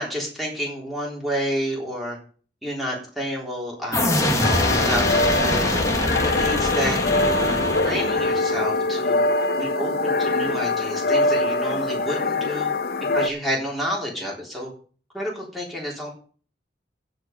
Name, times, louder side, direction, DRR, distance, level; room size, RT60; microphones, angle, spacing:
voice 1, 0.0-2.2 2.6-5.8 6.2-9.2 9.6-12.7 13.1-14.7 15.1-16.1, equal, ahead, -4 dB, 3.7 m, -30 dB
sound 1, 3.9-8.6, left 1 dB, 15° left, 1.6 m, -23 dB
sound 2, 4.4-13.3, left 2 dB, 55° left, 0.7 m, -23 dB
15.5 x 5.2 x 5.3 m, 0.41 s
head